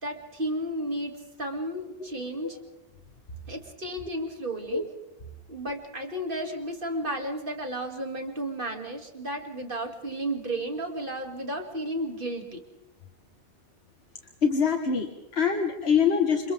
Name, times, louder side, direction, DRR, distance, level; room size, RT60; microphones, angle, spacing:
voice 1, 0.0-2.6 3.5-4.8 5.5-12.6, right 1 dB, 60° right, 3 dB, 2.8 m, -33 dB
voice 2, 14.4-16.5, left 6 dB, 85° left, 4 dB, 1.7 m, -24 dB
30.0 x 27.0 x 3.6 m, 0.96 s
omnidirectional pair, 1.0 m